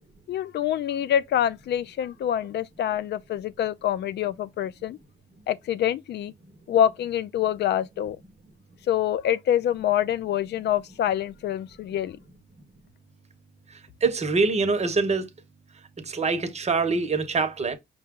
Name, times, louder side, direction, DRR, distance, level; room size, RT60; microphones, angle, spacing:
voice 1, 0.3-5.0 5.5-6.3 6.7-8.2 8.9-12.2, left 10 dB, 60° left, 0.4 m, -26 dB
voice 2, 14.0-15.3 16.0-17.8, right 4 dB, 35° right, 0.9 m, -24 dB
5.5 x 2.2 x 3.7 m
cardioid pair, 90°, 20 cm